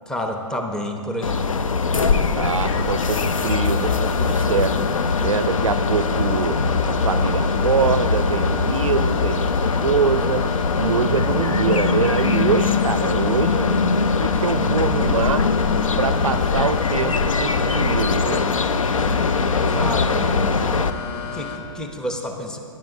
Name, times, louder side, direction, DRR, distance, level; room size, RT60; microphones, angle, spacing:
voice 1, 0.1-1.4 19.7-20.8 21.1-22.6, left 1 dB, 5° left, 3 dB, 0.7 m, -29 dB
sound 1, 1.2-20.9, left 4 dB, 90° left, 0.5 m, -21 dB
voice 2, 2.4-4.9 5.2-6.6 7.0-10.5 10.8-13.7 14.2-15.5 16.0-18.5, right 7 dB, 85° right, 14 dB, 0.4 m, -24 dB
sound 2, 2.6-21.6, left 7 dB, 55° left, 1.4 m, -33 dB
17.5 x 10.5 x 2.7 m, 2.6 s
hypercardioid pair, 125°, 17 cm